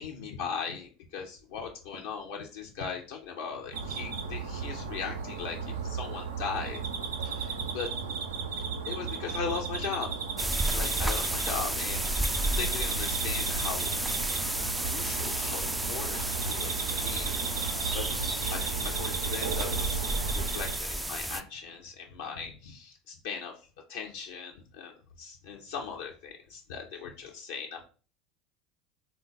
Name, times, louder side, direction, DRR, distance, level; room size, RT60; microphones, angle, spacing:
voice 1, 0.0-6.8 7.2-7.9 8.8-10.1 10.7-12.0 12.6-14.3 14.8-17.3 17.7-23.5 23.9-27.8, left 6 dB, 65° left, 1 dB, 0.5 m, -38 dB
sound 1, 3.7-20.8, right 5 dB, 75° right, 0.5 m, -35 dB
sound 2, 10.4-21.4, right 1 dB, 5° right, 0.3 m, -32 dB
3.7 x 2.3 x 3.8 m, 0.36 s
figure-of-eight pair, 70°, 0 cm